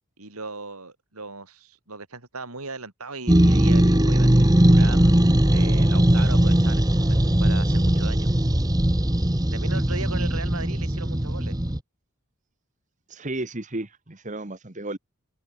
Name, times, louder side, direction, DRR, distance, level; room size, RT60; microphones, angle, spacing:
voice 1, 0.2-5.1 5.5-8.3 9.5-11.5, right 3 dB, 85° right, 4.6 m, -38 dB
sound 1, 3.3-11.8, right 1 dB, 15° right, 1.2 m, -19 dB
voice 2, 13.1-15.0, right 2 dB, 35° right, 1.5 m, -33 dB
head